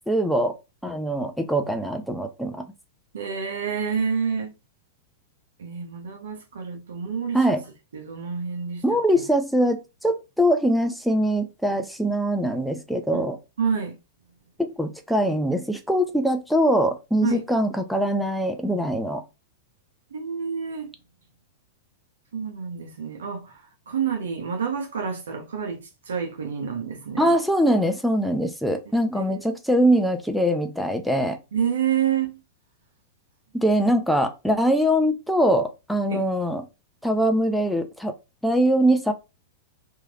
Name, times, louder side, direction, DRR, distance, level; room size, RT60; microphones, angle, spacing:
voice 1, 0.1-0.6 0.8-2.7 7.3-7.6 8.8-13.4 14.6-19.2 27.2-31.4 33.5-36.7 37.0-38.2 38.4-39.1, equal, ahead, 0.5 m, -22 dB
voice 2, 3.1-4.5 5.6-7.6 7.9-8.8 9.1-9.2 13.1-13.2 13.6-13.9 17.2-17.4 20.1-21.0 22.3-23.5 23.9-27.3 29.1-29.2 31.5-32.4 36.1-36.2, right 7 dB, 75° right, 0.8 m, -28 dB
3.1 x 2.7 x 2.4 m
hypercardioid pair, 105°, 0 cm